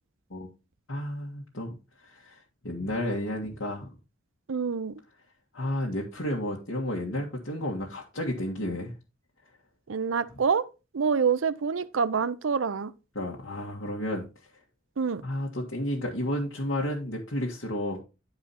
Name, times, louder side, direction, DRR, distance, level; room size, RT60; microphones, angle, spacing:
voice 1, 0.9-1.8 2.0-2.4 2.6-3.9 5.5-9.0 10.2-10.3 13.2-14.3 15.2-18.0, left 1 dB, 80° left, 1.6 m, -32 dB
voice 2, 4.5-4.9 9.9-10.6 10.9-12.9 15.0-15.2, right 6 dB, 85° right, 0.6 m, -26 dB
9.4 x 4.8 x 4.2 m
head